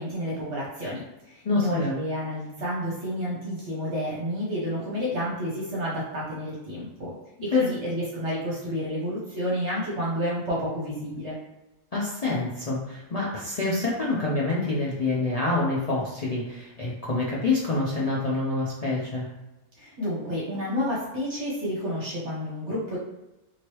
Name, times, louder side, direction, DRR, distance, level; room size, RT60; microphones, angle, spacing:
voice 1, 0.0-7.1 7.4-11.4 19.8-23.0, equal, 60° right, -5 dB, 1.0 m, -30 dB
voice 2, 1.4-2.0 7.5-7.7 11.9-19.3, left 3 dB, 85° left, -6 dB, 0.3 m, -27 dB
3.0 x 2.7 x 3.0 m, 0.98 s
omnidirectional pair, 1.5 m